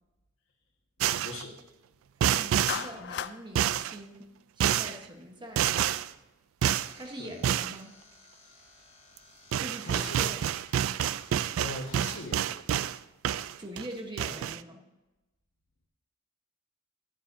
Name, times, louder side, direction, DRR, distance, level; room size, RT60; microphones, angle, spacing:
sound 1, 1.0-1.4 2.2-2.9 3.6-4.0 4.6-5.0 5.6-6.1 6.6-6.9 7.4-7.8 9.2-9.3 9.5-13.0 13.2-13.9 14.2-14.6, right 10 dB, 80° right, 0.3 m, -28 dB
voice 1, 1.2-1.5 7.2-7.3 9.8-10.2 11.6-12.5, left 2 dB, 70° left, -2 dB, 1.6 m, -40 dB
voice 2, 2.2-5.7 6.9-8.0 9.6-10.4 13.6-14.8, right 1 dB, 20° right, 3 dB, 1.0 m, -43 dB
Clapping, 2.7-3.4, left 9 dB, 55° left, 0.3 m, -34 dB
sound 2, 6.6-12.3, left 2 dB, 35° left, 2.6 m, -56 dB
11.5 x 10.5 x 2.7 m, 1.0 s
head